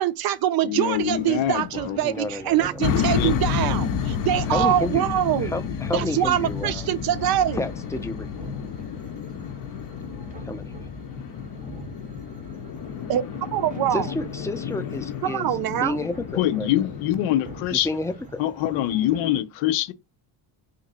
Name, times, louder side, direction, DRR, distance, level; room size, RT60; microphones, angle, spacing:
voice 1, 0.0-5.5 5.9-7.6 13.1-14.1 15.2-16.0, right 12 dB, 50° right, 0.5 m, -24 dB
voice 2, 0.6-2.0 2.8-3.9 16.4-17.9 18.4-19.9, left 12 dB, 85° left, 0.6 m, -25 dB
sound 1, 0.9-19.4, right 3 dB, 15° right, 0.8 m, -45 dB
voice 3, 2.0-2.8 4.5-5.1 5.4-6.9 7.6-8.3 10.4-10.7 13.9-16.7 17.7-18.4, left 2 dB, 5° left, 0.4 m, -30 dB
sound 2, 2.8-17.6, left 7 dB, 45° left, 0.6 m, -31 dB
2.9 x 2.6 x 4.1 m
cardioid pair, 95°, 47 cm